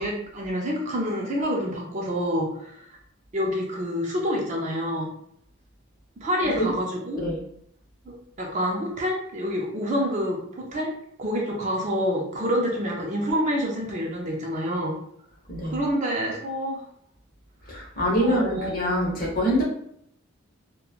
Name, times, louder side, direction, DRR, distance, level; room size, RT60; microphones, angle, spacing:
voice 1, 0.0-2.9 3.3-5.1 6.2-7.2 8.1-10.9 11.2-15.0 15.6-16.8 18.2-19.1, equal, 35° right, -1 dB, 0.5 m, -27 dB
voice 2, 15.5-15.8 17.6-19.6, equal, 40° left, -4 dB, 0.9 m, -25 dB
3.1 x 2.2 x 2.3 m, 0.71 s
head